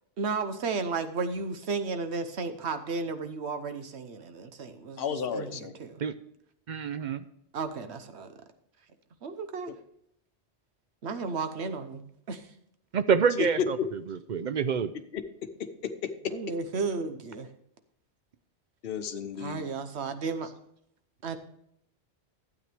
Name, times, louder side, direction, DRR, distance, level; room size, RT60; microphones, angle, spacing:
voice 1, 0.2-6.0 7.5-8.3 9.2-9.7 11.0-12.5 16.3-17.5 19.4-20.5 21.2-21.4, right 4 dB, 75° right, 9 dB, 1.2 m, -34 dB
voice 2, 5.0-5.8 13.8-13.9 15.1-15.2 15.8-16.3 18.8-19.7, left 7 dB, 60° left, 7 dB, 1.0 m, -33 dB
voice 3, 6.7-7.3 12.9-14.9, right 6 dB, 55° right, 12 dB, 0.6 m, -27 dB
12.0 x 8.5 x 3.4 m, 0.73 s
omnidirectional pair, 1.1 m